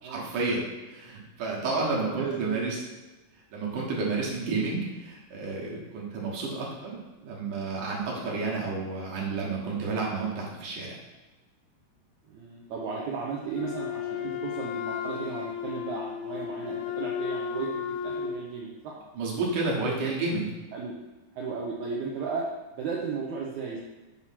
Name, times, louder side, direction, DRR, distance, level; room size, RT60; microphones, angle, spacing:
voice 1, 0.0-2.8 3.5-10.9 19.1-20.5, right 3 dB, 65° right, -3 dB, 2.5 m, -31 dB
voice 2, 1.9-2.7 12.3-18.9 20.7-20.9 21.3-22.5 22.8-23.8, right 5 dB, 90° right, -3 dB, 1.6 m, -35 dB
Wind instrument woodwind instrument, 13.5-18.4, left 7 dB, 75° left, 2.5 m, -33 dB
8.2 x 3.0 x 5.7 m, 1.1 s
omnidirectional pair, 4.4 m